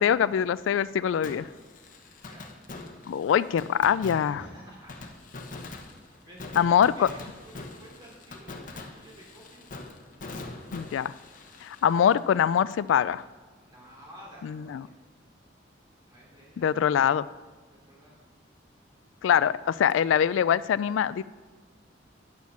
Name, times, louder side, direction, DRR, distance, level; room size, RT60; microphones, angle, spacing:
voice 1, 0.0-1.5 3.1-4.4 6.6-7.1 10.7-11.1 11.6-13.2 14.4-14.8 16.6-17.2 19.2-21.2, left 8 dB, 85° left, 18 dB, 0.3 m, -23 dB
Fireworks, 1.2-12.9 13.2-13.3 19.9-20.0, left 2 dB, 45° left, 0.9 m, -43 dB
voice 2, 2.2-2.5 4.2-5.5 6.1-9.7 13.6-15.0 16.0-17.0 17.7-18.2, equal, 25° right, -4 dB, 3.6 m, -51 dB
9.6 x 6.4 x 7.0 m, 1.4 s
head